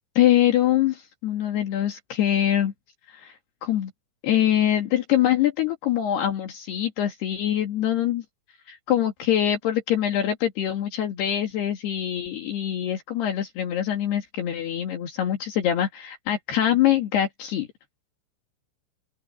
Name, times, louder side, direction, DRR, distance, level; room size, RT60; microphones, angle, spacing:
voice 1, 0.2-2.7 3.1-3.3 3.6-3.9 4.2-8.2 8.7-17.7, left 11 dB, 70° left, 4.0 m, -24 dB
open air
omnidirectional pair, 5.1 m